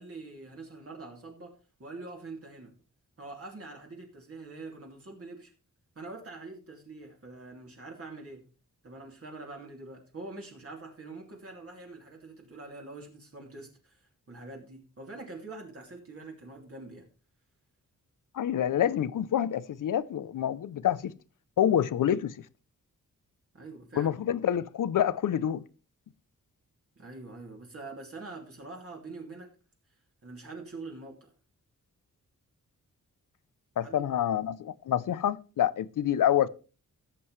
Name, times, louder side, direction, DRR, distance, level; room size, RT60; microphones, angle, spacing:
voice 1, 0.0-2.8 3.2-5.5 6.0-8.5 8.8-17.1 23.5-24.1 27.0-29.5 30.2-31.3 33.8-34.1, right 3 dB, 45° right, 2.6 m, -44 dB
voice 2, 18.3-21.1 21.6-22.3 23.9-25.6 33.8-36.5, left 10 dB, 70° left, 0.6 m, -27 dB
16.5 x 7.7 x 3.2 m
wide cardioid pair, 155°, 32 cm